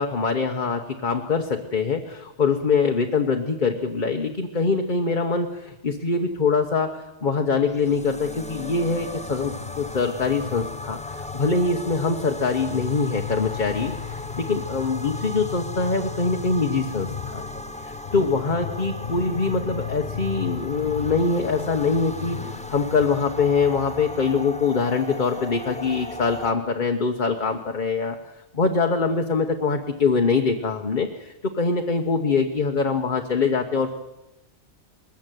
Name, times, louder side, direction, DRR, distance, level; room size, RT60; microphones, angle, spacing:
voice 1, 0.0-17.4 17.8-28.2 28.5-34.0, left 4 dB, 40° left, 3 dB, 1.3 m, -24 dB
sound 1, 7.6-26.5, left 1 dB, 5° left, 0.8 m, -37 dB
sound 2, 9.0-24.3, left 8 dB, 65° left, 1.1 m, -36 dB
20.5 x 14.5 x 9.2 m, 1.0 s
omnidirectional pair, 1.2 m